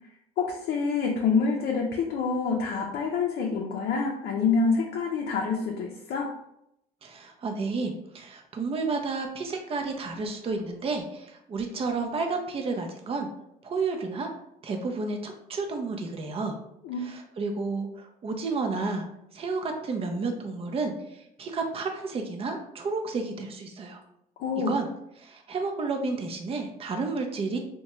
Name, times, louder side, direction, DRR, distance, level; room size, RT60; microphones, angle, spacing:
voice 1, 0.4-6.3 16.8-17.0 24.4-24.7, left 5 dB, 70° left, 0 dB, 0.5 m, -27 dB
voice 2, 7.0-13.3 13.6-14.3 14.6-16.5 17.0-19.1 19.3-20.9 21.4-24.0 24.7-24.9 25.2-27.6, right 3 dB, 35° right, 4 dB, 0.5 m, -31 dB
2.7 x 2.2 x 3.0 m, 0.79 s
cardioid pair, 110°, 17 cm